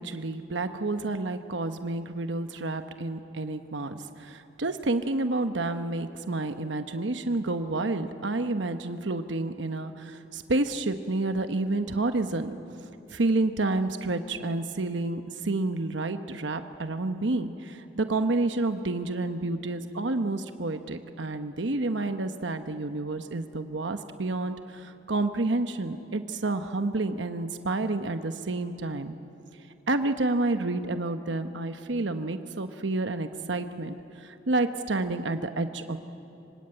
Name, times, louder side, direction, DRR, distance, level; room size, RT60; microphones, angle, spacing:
voice 1, 0.0-12.5 13.1-29.2 29.9-36.0, right 2 dB, 70° right, 8 dB, 1.0 m, -29 dB
25.5 x 25.0 x 8.9 m, 2.9 s
head